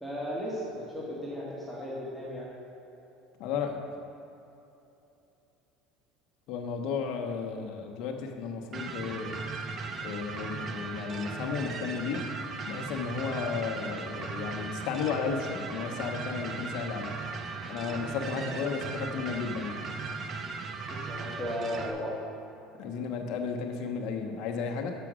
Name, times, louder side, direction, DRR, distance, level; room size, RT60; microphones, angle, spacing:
voice 1, 0.0-2.5 18.1-18.4 20.9-22.2, equal, ahead, -7 dB, 1.7 m, -36 dB
voice 2, 3.4-3.8 6.5-9.4 10.0-12.2 12.6-17.1 17.7-19.9 22.8-24.9, left 5 dB, 65° left, 2 dB, 1.0 m, -33 dB
sound 1, 8.7-21.9, right 4 dB, 40° right, 0.7 m, -38 dB
6.8 x 6.1 x 6.2 m, 2.9 s
supercardioid pair, 105°, 0 cm